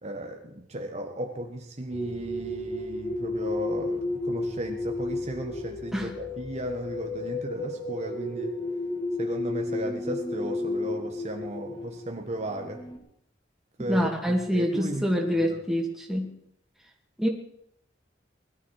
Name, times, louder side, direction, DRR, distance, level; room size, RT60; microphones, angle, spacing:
voice 1, 0.0-8.6 9.2-12.8 13.8-15.6, right 1 dB, 40° right, 3 dB, 1.4 m, -35 dB
sound 1, 1.9-13.0, left 2 dB, 25° left, 2.6 m, -33 dB
voice 2, 13.9-16.3 17.2-17.3, equal, ahead, 0 dB, 2.6 m, -26 dB
21.0 x 13.0 x 4.9 m, 0.73 s
head